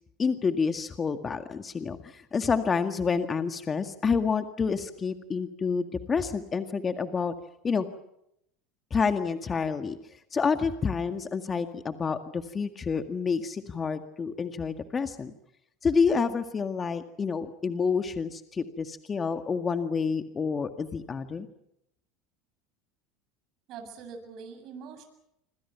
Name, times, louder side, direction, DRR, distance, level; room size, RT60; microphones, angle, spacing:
voice 1, 0.2-7.3 7.6-7.9 8.9-10.0 10.3-15.3 15.8-21.5, left 5 dB, 30° left, 8 dB, 1.9 m, -28 dB
voice 2, 23.7-25.0, right 5 dB, 55° right, 6 dB, 7.6 m, -43 dB
27.0 x 26.0 x 5.9 m, 0.78 s
hypercardioid pair, 85°, 0 cm